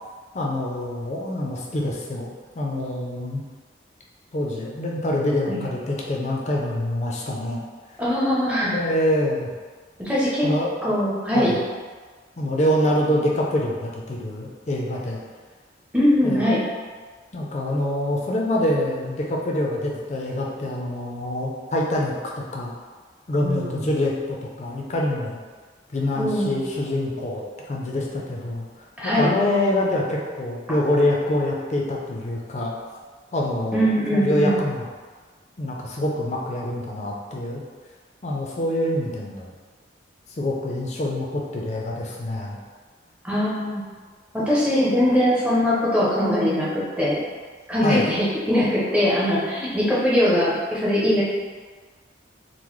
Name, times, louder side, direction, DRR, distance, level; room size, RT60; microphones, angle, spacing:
voice 1, 0.3-2.3 2.5-3.4 4.3-7.6 8.6-9.5 10.4-10.7 11.3-11.6 12.4-15.2 16.2-16.4 17.3-22.7 23.3-25.4 25.9-32.7 33.3-34.9 35.6-37.6 38.2-39.5 40.3-42.6 47.8-48.1, left 1 dB, 35° left, -2 dB, 0.4 m, -25 dB
voice 2, 8.0-8.7 10.0-10.4 10.8-11.5 15.9-16.6 23.4-23.8 26.1-26.6 29.0-29.3 33.7-34.6 43.2-43.8 44.3-47.2 47.7-51.2, equal, 5° right, -8 dB, 0.6 m, -21 dB
3.7 x 2.1 x 3.0 m, 1.5 s
head